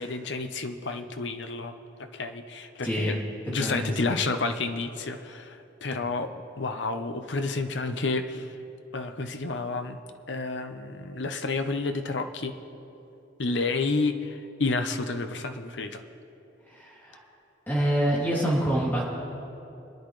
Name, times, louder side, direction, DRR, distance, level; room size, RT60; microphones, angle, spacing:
voice 1, 0.0-3.2 3.5-8.6 8.9-10.0 10.3-12.6 13.4-16.0, left 3 dB, 70° left, 7 dB, 0.9 m, -30 dB
voice 2, 2.8-3.2 3.6-4.2 16.7-17.2 17.7-19.1, right 1 dB, 10° left, -6 dB, 3.1 m, -26 dB
27.0 x 10.5 x 3.3 m, 2.9 s
head